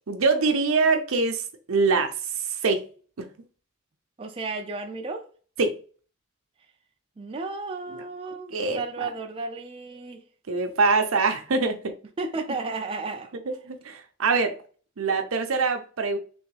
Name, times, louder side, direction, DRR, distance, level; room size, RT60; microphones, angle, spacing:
voice 1, 0.1-1.4 1.7-2.1 2.6-2.8 3.2-3.3 5.6-5.7 8.5-8.8 10.5-11.9 13.7-14.5 15.0-16.2, right 4 dB, 75° right, 0.6 m, -23 dB
voice 2, 4.2-5.3 7.2-10.2 12.2-13.4, right 3 dB, 25° right, 0.4 m, -33 dB
3.5 x 3.0 x 3.3 m
head